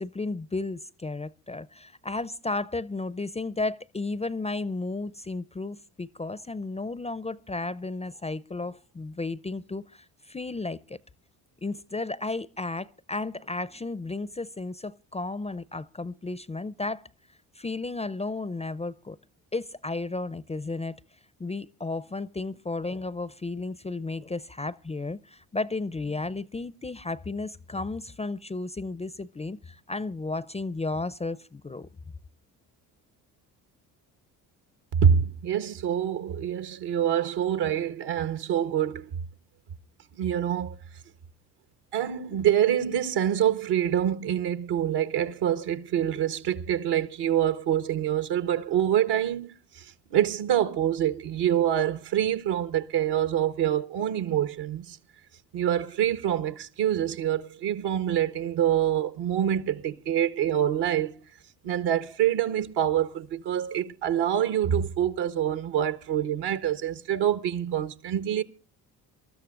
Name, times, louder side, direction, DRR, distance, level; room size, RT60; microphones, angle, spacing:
voice 1, 0.0-11.0 11.6-17.1 17.5-19.2 19.5-21.0 21.4-31.9, left 3 dB, 15° left, 0.6 m, -33 dB
voice 2, 35.0-39.1 40.1-40.8 41.9-55.0 55.5-61.2 61.6-68.4, right 10 dB, 65° right, 1.4 m, -26 dB
27.0 x 13.5 x 2.5 m
hypercardioid pair, 55°, 43 cm